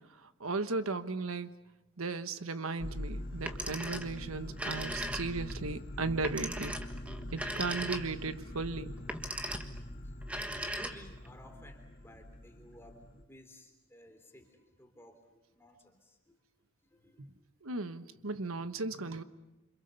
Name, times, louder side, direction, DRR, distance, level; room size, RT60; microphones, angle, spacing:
voice 1, 0.2-1.5 2.0-6.8 7.3-8.9 17.2-17.3 17.6-19.2, right 3 dB, 85° right, 11 dB, 1.3 m, -36 dB
sound 1, 2.8-13.2, left 1 dB, 45° left, 1.8 m, -44 dB
Telephone, 3.3-4.2 4.5-5.6 6.2-8.3 9.0-9.8 10.2-11.3, right 1 dB, 5° right, 1.5 m, -38 dB
voice 2, 9.4-9.8 10.0-16.4 16.9-17.3 18.1-18.2, left 1 dB, 10° left, 4 dB, 3.2 m, -56 dB
28.5 x 26.0 x 7.0 m, 1.0 s
head